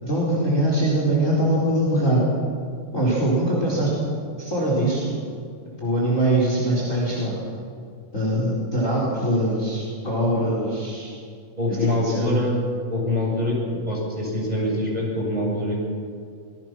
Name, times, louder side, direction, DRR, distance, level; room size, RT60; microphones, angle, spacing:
voice 1, 0.0-2.2 2.9-3.9 4.4-5.1 5.8-7.4 8.1-11.1 11.7-11.8 12.0-12.4, right 1 dB, 20° left, -4 dB, 4.8 m, -22 dB
voice 2, 11.6-12.6 12.9-13.6 13.9-15.8, left 1 dB, 10° right, -4 dB, 7.7 m, -24 dB
25.5 x 21.5 x 6.2 m, 2.2 s
omnidirectional pair, 3.6 m